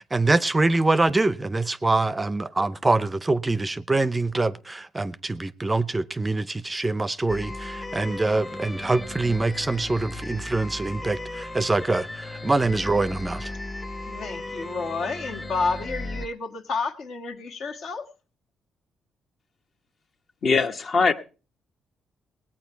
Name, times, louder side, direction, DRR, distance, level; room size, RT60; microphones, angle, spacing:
voice 1, 0.1-13.5, right 2 dB, 20° right, 0.5 m, -24 dB
sound 1, 7.3-16.3, left 2 dB, 20° left, 0.9 m, -36 dB
voice 2, 14.1-18.1, left 4 dB, 70° left, 1.5 m, -30 dB
voice 3, 20.4-21.1, left 4 dB, 50° left, 1.1 m, -21 dB
18.5 x 8.7 x 4.5 m
cardioid pair, 90°, 0 cm